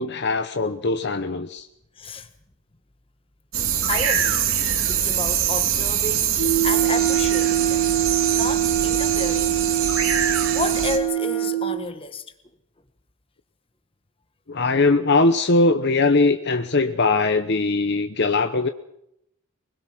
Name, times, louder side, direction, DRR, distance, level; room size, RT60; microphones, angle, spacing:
voice 1, 0.0-1.7 14.5-18.7, left 3 dB, 50° left, 0.9 m, -20 dB
voice 2, 1.9-2.3 3.9-7.9 8.3-9.5 9.9-10.0 10.5-12.2, left 3 dB, 25° left, 1.7 m, -31 dB
sound 1, 3.5-11.0, right 8 dB, 65° right, 2.4 m, -23 dB
sound 2, 6.4-11.8, right 13 dB, 80° left, 3.2 m, -23 dB
Wind instrument woodwind instrument, 6.6-11.6, right 5 dB, 5° right, 3.7 m, -37 dB
23.5 x 21.0 x 6.2 m
head